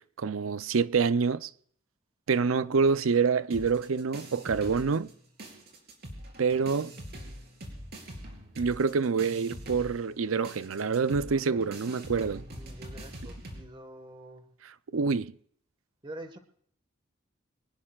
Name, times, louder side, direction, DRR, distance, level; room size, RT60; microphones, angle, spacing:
voice 1, 0.2-1.5 2.3-5.1 6.4-6.9 8.6-12.4 14.9-15.3, right 5 dB, 80° right, 0.6 m, -26 dB
sound 1, 3.5-5.1 5.4-13.6, right 1 dB, 50° right, 3.8 m, -43 dB
voice 2, 11.1-11.7 12.5-14.4 16.0-16.4, right 1 dB, 25° right, 1.5 m, -46 dB
25.0 x 19.0 x 2.4 m
head